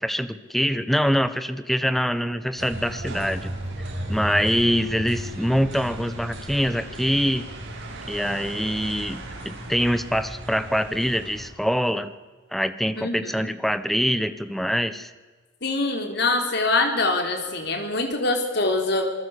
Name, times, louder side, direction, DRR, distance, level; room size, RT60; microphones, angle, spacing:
voice 1, 0.0-3.5 4.1-7.5 8.1-12.1 12.5-15.1, equal, ahead, 12 dB, 1.1 m, -24 dB
sound 1, 2.6-11.5, right 1 dB, 80° right, 7.4 m, -35 dB
voice 2, 13.0-13.5 15.6-19.1, left 2 dB, 55° left, 4 dB, 4.2 m, -24 dB
27.0 x 20.0 x 8.4 m, 1.3 s
head